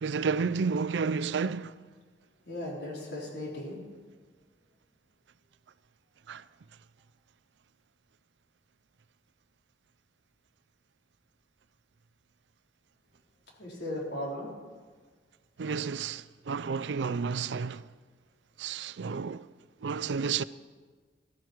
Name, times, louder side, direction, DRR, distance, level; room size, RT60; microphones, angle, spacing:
voice 1, 0.0-1.7 6.3-6.4 15.6-17.8 18.6-19.5 19.8-20.4, right 5 dB, 85° right, 0.4 m, -31 dB
voice 2, 2.5-3.8 13.6-14.5, left 1 dB, 70° left, 4.2 m, -37 dB
17.0 x 13.0 x 4.6 m
head